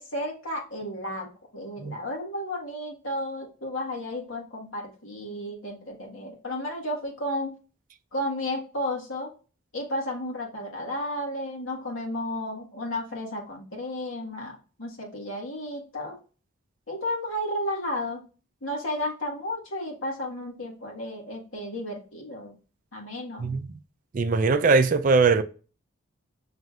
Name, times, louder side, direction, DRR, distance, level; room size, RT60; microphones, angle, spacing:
voice 1, 0.0-7.5 8.1-9.3 9.7-16.2 16.9-18.2 18.6-22.5 22.9-23.5, left 1 dB, 65° left, 1.5 m, -33 dB
voice 2, 23.4-23.7 24.1-25.4, right 4 dB, 40° right, 0.3 m, -21 dB
5.7 x 3.2 x 2.4 m
head